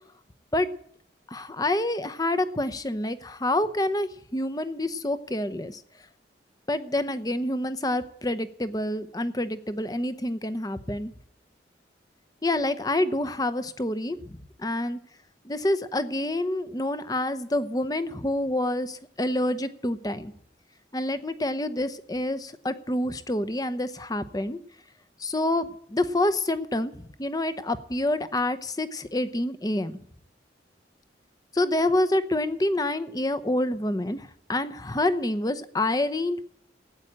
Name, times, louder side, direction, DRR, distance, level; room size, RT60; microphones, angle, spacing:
voice 1, 1.3-5.8 6.7-11.1 12.4-15.0 15.4-20.3 20.9-24.6 25.2-30.0 31.5-36.4, left 1 dB, 20° left, 12 dB, 0.8 m, -27 dB
14.5 x 8.9 x 8.7 m, 0.65 s
head